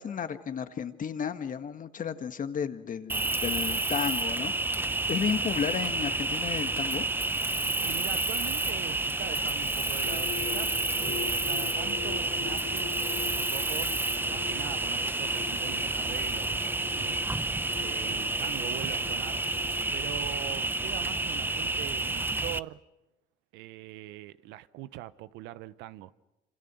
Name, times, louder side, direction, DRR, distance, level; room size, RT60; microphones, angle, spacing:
voice 1, 0.0-4.5 5.1-7.1, left 7 dB, 45° left, 1.8 m, -33 dB
Cricket, 3.1-22.6, right 2 dB, 10° right, 0.8 m, -30 dB
voice 2, 7.8-12.9 13.3-13.9 14.3-17.2 17.8-19.4 19.9-22.8 23.5-26.1, right 15 dB, 75° right, 0.9 m, -42 dB
sound 1, 10.0-21.7, left 12 dB, 70° left, 3.3 m, -44 dB
27.5 x 26.5 x 6.3 m
hypercardioid pair, 65°, 19 cm